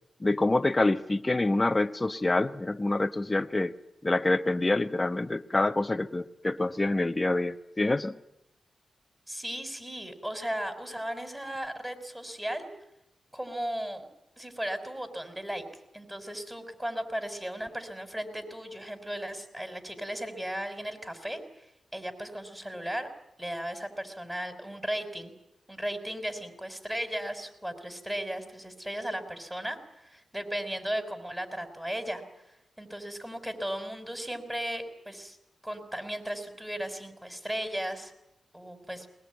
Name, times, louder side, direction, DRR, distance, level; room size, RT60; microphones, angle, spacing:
voice 1, 0.2-3.7 4.0-8.1, left 2 dB, 25° left, 8 dB, 1.1 m, -26 dB
voice 2, 9.3-12.7 13.3-14.1 14.4-15.6 15.9-21.4 21.9-23.1 23.4-25.3 25.7-32.2 32.8-35.4 35.6-38.1 38.5-39.1, equal, 10° right, 7 dB, 5.4 m, -36 dB
21.0 x 20.5 x 9.4 m, 0.83 s
cardioid pair, 50°, 0 cm